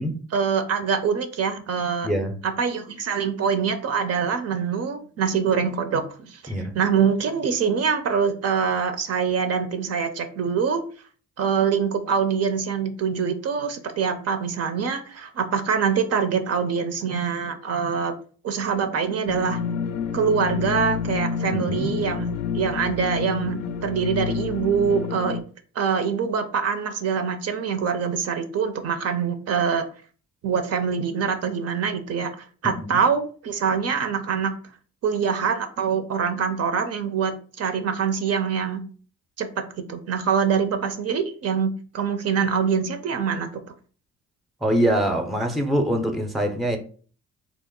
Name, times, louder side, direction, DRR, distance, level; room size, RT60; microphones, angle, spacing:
voice 1, 0.3-2.1 2.4-10.8 11.4-18.1 18.4-19.6 20.1-25.4 25.8-29.8 30.4-32.3 32.6-34.5 35.0-38.8 39.4-43.6, right 6 dB, 55° right, 0.5 m, -24 dB
voice 2, 2.0-2.4 6.5-6.7 21.5-21.9 32.6-33.0 44.6-46.8, equal, ahead, 0.5 m, -24 dB
sound 1, 19.3-25.4, left 7 dB, 70° left, 0.4 m, -29 dB
2.9 x 2.0 x 3.6 m
cardioid pair, 90°, 30 cm